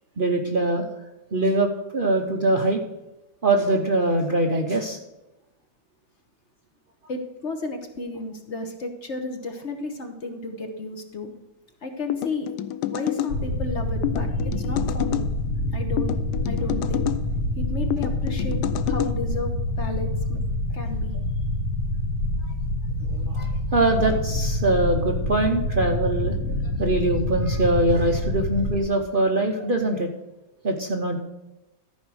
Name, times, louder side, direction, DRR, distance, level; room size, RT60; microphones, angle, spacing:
voice 1, 0.2-0.9 1.3-2.8 3.4-5.0 23.2-26.3 26.8-30.1 30.6-31.2, right 2 dB, 40° right, 3 dB, 0.8 m, -23 dB
voice 2, 7.1-11.3 11.8-12.5 12.9-15.2 15.7-16.1 16.4-17.1 17.6-18.6 18.9-20.4 20.7-21.1, left 2 dB, 45° left, 4 dB, 1.3 m, -33 dB
sound 1, 12.1-13.3 14.0-15.3 16.0-17.2 17.9-19.1, left 13 dB, 85° left, 1.2 m, -28 dB
sound 2, 13.3-28.8, left 1 dB, 70° left, 1.6 m, -27 dB
13.5 x 4.9 x 6.2 m, 0.96 s
omnidirectional pair, 1.7 m